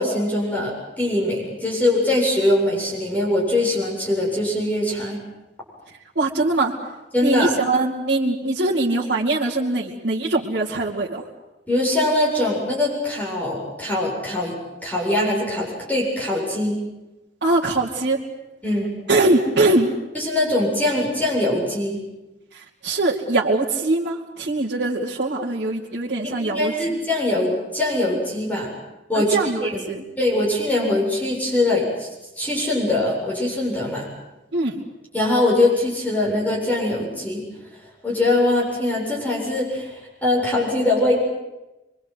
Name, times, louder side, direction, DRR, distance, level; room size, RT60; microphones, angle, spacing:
voice 1, 0.0-5.2 7.1-7.5 11.7-14.5 14.8-16.8 18.6-18.9 20.1-22.0 26.2-28.7 29.1-32.1 32.4-34.1 35.1-37.4 38.0-41.2, left 1 dB, 10° left, -4 dB, 7.7 m, -22 dB
voice 2, 6.2-6.7 7.2-11.2 17.4-18.2 19.1-19.9 22.5-26.7 29.3-30.0 34.5-34.8, right 2 dB, 65° right, -6 dB, 2.6 m, -22 dB
25.5 x 24.0 x 8.1 m, 0.99 s
head